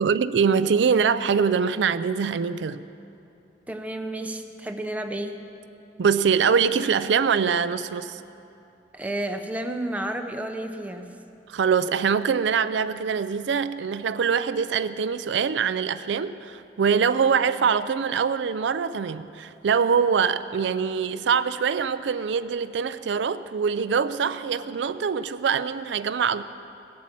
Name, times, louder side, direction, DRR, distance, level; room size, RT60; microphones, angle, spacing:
voice 1, 0.0-2.8 6.0-8.2 11.5-26.4, right 6 dB, 75° right, 13 dB, 0.4 m, -23 dB
voice 2, 3.7-5.4 8.9-11.2, right 1 dB, 10° right, 5 dB, 0.7 m, -31 dB
17.0 x 8.3 x 7.5 m, 2.7 s
head